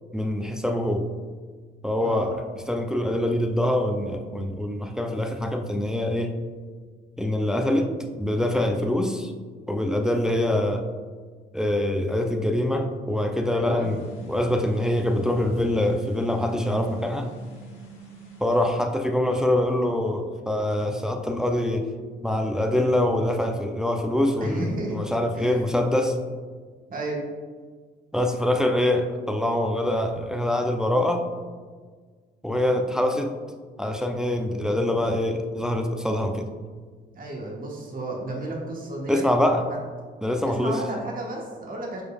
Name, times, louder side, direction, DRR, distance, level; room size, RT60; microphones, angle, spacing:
voice 1, 0.1-1.0 1.8-2.3 2.7-6.3 7.2-7.9 8.2-9.3 9.7-10.8 11.5-14.0 14.3-17.3 18.4-21.9 22.2-26.2 28.1-31.3 32.4-33.3 33.8-36.5 39.1-39.6 40.2-40.8, left 1 dB, 5° right, 4 dB, 0.4 m, -24 dB
voice 2, 13.5-13.9 24.4-25.0 25.3-25.7 26.9-27.2 37.1-39.3 39.5-39.8 40.4-42.0, right 2 dB, 45° right, -1 dB, 1.2 m, -33 dB
sound 1, 13.8-18.6, right 6 dB, 80° left, 1.1 m, -46 dB
4.9 x 4.6 x 2.3 m, 1.5 s
cardioid pair, 90°, 20 cm